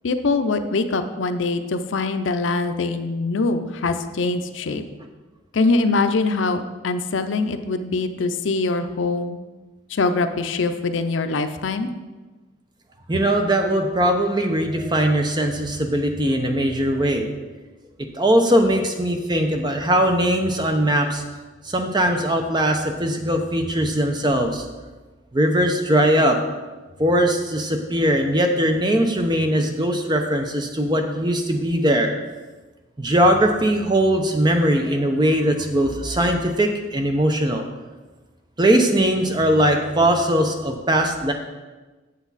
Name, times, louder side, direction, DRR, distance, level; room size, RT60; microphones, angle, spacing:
voice 1, 0.0-4.8 5.5-9.4 9.9-11.9, left 3 dB, 75° left, 9 dB, 0.6 m, -23 dB
voice 2, 13.1-17.3 18.2-21.2 21.6-24.6 25.3-26.4 27.0-32.1 33.0-37.6 38.6-41.3, right 1 dB, 20° right, 4 dB, 0.7 m, -20 dB
8.3 x 6.9 x 4.1 m, 1.2 s
head